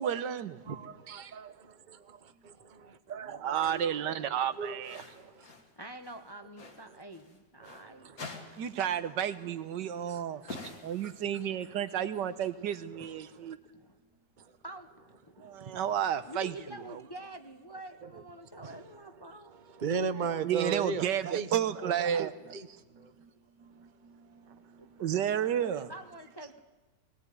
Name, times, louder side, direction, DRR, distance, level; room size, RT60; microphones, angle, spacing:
voice 1, 0.0-0.6 3.4-5.0 8.6-10.4 10.8-13.6 15.4-16.5 16.9-17.0 20.4-22.6 22.9-23.3 23.6-25.9, right 9 dB, 85° right, 1.6 m, -32 dB
voice 2, 0.7-1.5 1.9-5.5 7.6-8.7 9.8-10.7 11.0-11.1 13.0-13.3 14.4-14.5 15.4-15.8 18.0-18.1 18.5-18.8 19.5-21.5 22.0-23.1, right 6 dB, 35° right, 0.9 m, -39 dB
sound 1, 3.6-3.9 4.8-5.7 6.0-7.9 8.2-9.0 9.2-9.4 10.5-11.6, left 3 dB, 55° left, 2.7 m, -47 dB
voice 3, 5.8-8.1 10.8-10.9 13.0-13.1 13.7-14.0 14.6-15.5 16.3-19.5 24.8-26.6, right 1 dB, 20° left, 0.8 m, -47 dB
19.0 x 18.5 x 9.4 m
omnidirectional pair, 1.9 m